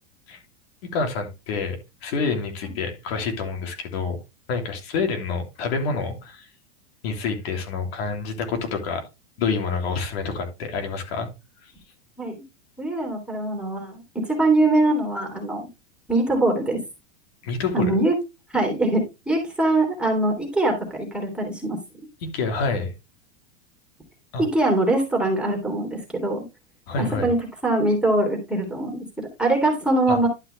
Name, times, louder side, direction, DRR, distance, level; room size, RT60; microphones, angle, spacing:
voice 1, 0.9-4.2 4.5-6.5 7.0-9.0 9.4-11.3 17.4-18.0 22.2-22.9 24.3-24.5 26.9-27.3 30.1-30.2, left 4 dB, 60° left, 3.0 m, -27 dB
voice 2, 12.8-15.7 16.1-16.8 17.7-18.1 18.5-21.8 24.4-26.4 27.0-27.4 27.6-30.3, right 2 dB, 5° right, 3.2 m, -22 dB
12.0 x 5.8 x 3.3 m
supercardioid pair, 145°, 34 cm